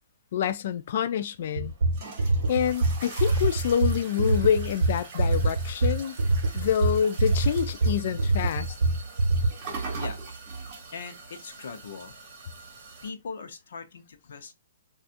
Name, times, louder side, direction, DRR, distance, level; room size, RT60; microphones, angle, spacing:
voice 1, 0.3-1.7 2.5-6.2 6.5-8.8, left 9 dB, 40° left, 0.3 m, -27 dB
sound 1, 1.4-13.1, right 4 dB, 25° right, 1.1 m, -41 dB
sound 2, 1.6-9.5, right 2 dB, 85° right, 0.7 m, -24 dB
voice 2, 10.9-12.1 13.0-14.5, left 5 dB, 60° left, 0.7 m, -40 dB
4.0 x 2.4 x 2.5 m
hypercardioid pair, 170°, 0 cm